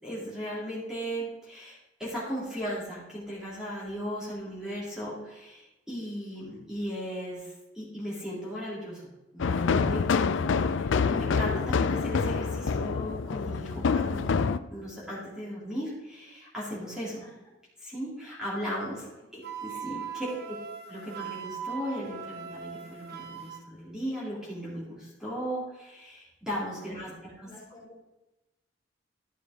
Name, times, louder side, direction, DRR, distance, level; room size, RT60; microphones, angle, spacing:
voice 1, 0.0-9.0 9.3-10.4 10.7-17.2 17.8-19.1 19.3-20.0 20.9-27.5, equal, 5° right, -8 dB, 3.4 m, -37 dB
sound 1, 9.4-14.6, left 5 dB, 90° left, 0.4 m, -26 dB
Wind instrument woodwind instrument, 19.4-23.6, right 7 dB, 55° right, 0.9 m, -40 dB
voice 2, 19.7-20.0 26.6-27.1 27.4-28.0, left 1 dB, 20° left, -7 dB, 3.3 m, -53 dB
12.0 x 6.5 x 3.8 m, 0.99 s
head